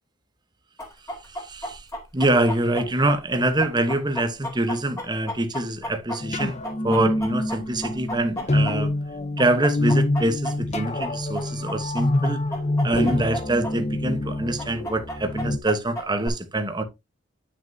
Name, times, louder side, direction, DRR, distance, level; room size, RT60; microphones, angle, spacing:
Chicken rooster, 0.8-9.1 9.4-13.7 14.0-14.1 14.6-16.3, equal, 15° left, 2.5 m, -33 dB
voice 1, 1.3-1.9 2.1-8.9 9.4-12.4 12.8-16.8, right 1 dB, 20° right, 1.1 m, -25 dB
sound 1, 6.2-15.6, left 1 dB, 35° left, 0.8 m, -26 dB
9.8 x 6.4 x 2.7 m
head